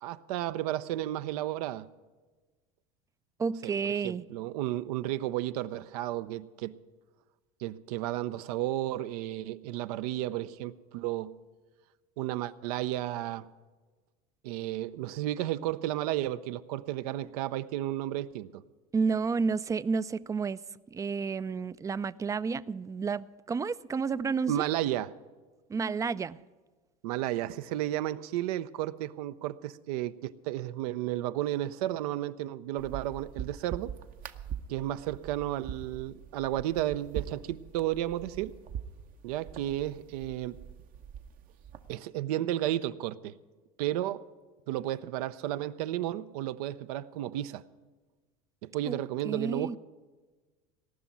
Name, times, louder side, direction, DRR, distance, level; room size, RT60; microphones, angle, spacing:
voice 1, 0.0-1.9 3.6-6.7 7.6-11.4 12.2-13.5 14.4-18.6 24.5-25.1 27.0-33.9 34.7-38.5 39.2-40.6 41.9-43.3 43.8-44.2 44.7-47.6 48.6-49.8, right 14 dB, 75° right, 0.6 m, -33 dB
voice 2, 3.4-4.2 18.9-20.6 20.9-24.6 25.7-26.4 48.9-49.0 49.2-49.8, right 5 dB, 15° right, 0.3 m, -31 dB
sound 1, 32.8-42.0, right 8 dB, 45° right, 0.8 m, -43 dB
18.0 x 6.1 x 9.1 m
supercardioid pair, 95°, 19 cm